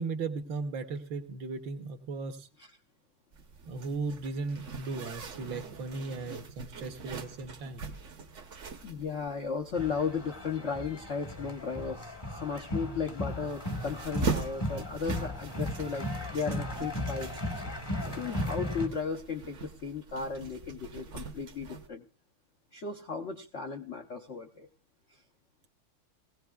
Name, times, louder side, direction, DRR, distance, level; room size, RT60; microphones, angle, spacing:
voice 1, 0.0-2.5 3.7-7.9, right 4 dB, 65° right, 8 dB, 1.6 m, -36 dB
Zipper (clothing), 3.3-21.9, right 5 dB, 50° right, 1.0 m, -42 dB
voice 2, 8.8-17.3 18.1-22.0 22.7-24.7, left 5 dB, 65° left, 2 dB, 0.7 m, -35 dB
sound 1, 9.7-18.9, left 1 dB, 20° left, 0.7 m, -36 dB
19.0 x 16.0 x 2.3 m, 0.35 s
omnidirectional pair, 2.3 m